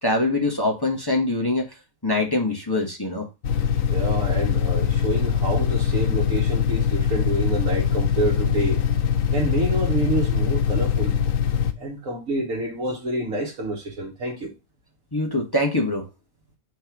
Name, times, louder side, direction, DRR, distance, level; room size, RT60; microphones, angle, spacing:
voice 1, 0.0-1.6 2.0-3.3 15.1-16.0, left 2 dB, 20° left, 1.2 m, -23 dB
sound 1, 3.4-11.7, left 7 dB, 85° left, 1.2 m, -22 dB
voice 2, 3.9-8.8 9.3-11.1 11.8-14.5, right 2 dB, 80° right, 1.7 m, -28 dB
5.9 x 3.2 x 5.8 m
omnidirectional pair, 1.4 m